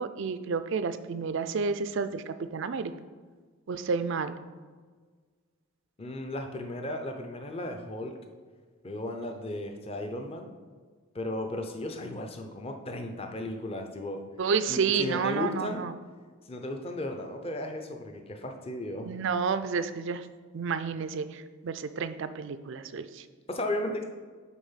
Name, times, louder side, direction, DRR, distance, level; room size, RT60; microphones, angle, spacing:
voice 1, 0.0-2.9 3.7-4.4 14.4-15.9 19.1-20.2 20.5-23.2, right 5 dB, 55° right, 12 dB, 0.4 m, -30 dB
voice 2, 6.0-8.2 8.8-10.5 11.1-14.2 14.7-15.9 16.5-19.1 23.5-24.0, left 1 dB, 25° left, 4 dB, 0.6 m, -35 dB
9.2 x 3.5 x 5.6 m, 1.5 s
head